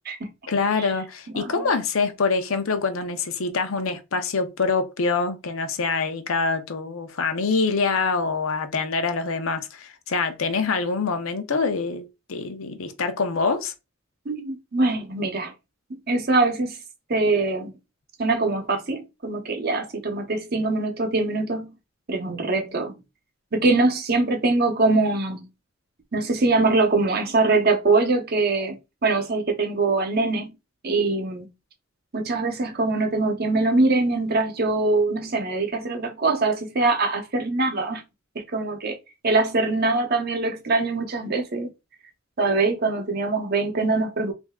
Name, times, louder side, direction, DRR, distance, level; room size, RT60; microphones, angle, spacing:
voice 1, 0.5-13.7, left 4 dB, 90° left, 0.7 m, -25 dB
voice 2, 1.3-1.7 14.3-15.5 15.9-16.8 17.1-17.7 18.2-21.7 22.1-22.9 23.5-25.5 26.1-30.5 30.8-31.5 32.1-38.0 38.3-39.0 39.2-41.7 42.4-44.3, right 3 dB, 50° right, 0.8 m, -23 dB
3.1 x 2.6 x 3.5 m
head